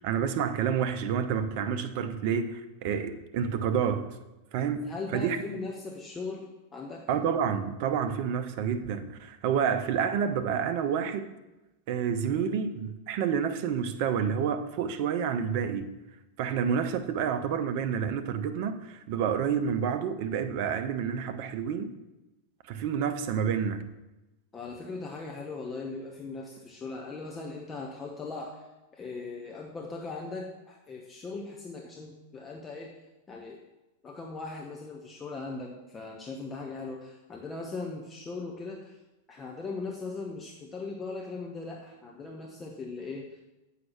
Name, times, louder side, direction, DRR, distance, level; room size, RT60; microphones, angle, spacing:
voice 1, 0.0-4.1 4.5-5.4 7.1-11.3 11.9-15.9 16.4-21.9 22.7-23.9, right 7 dB, 45° right, 0.7 m, -29 dB
voice 2, 4.9-7.1 24.5-28.6 28.9-32.9 33.3-33.6 34.0-39.0 39.3-43.4, left 3 dB, 20° left, 0.9 m, -39 dB
7.8 x 5.7 x 5.9 m
figure-of-eight pair, 90°, 0 cm